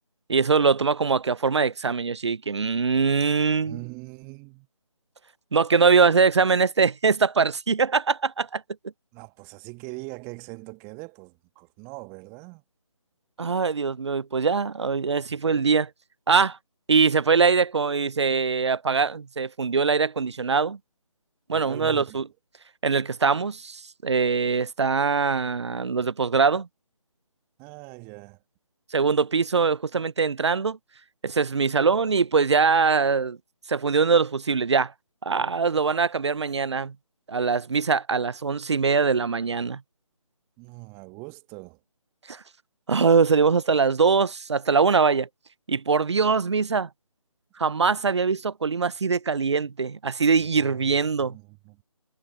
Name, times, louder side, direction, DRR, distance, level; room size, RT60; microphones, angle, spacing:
voice 1, 0.3-3.8 5.5-8.6 13.4-15.9 16.3-16.6 16.9-20.8 21.5-22.2 22.8-26.7 28.9-30.8 31.2-33.4 33.7-34.9 35.2-36.9 37.3-39.8 42.3-42.4 42.9-45.3 45.7-46.9 47.6-51.4, right 5 dB, 50° right, 0.7 m, -22 dB
voice 2, 3.6-4.7 9.1-12.6 21.5-22.2 27.6-28.4 40.6-41.8 50.4-51.8, right 31 dB, 10° right, 1.6 m, -42 dB
figure-of-eight pair, 150°, 18 cm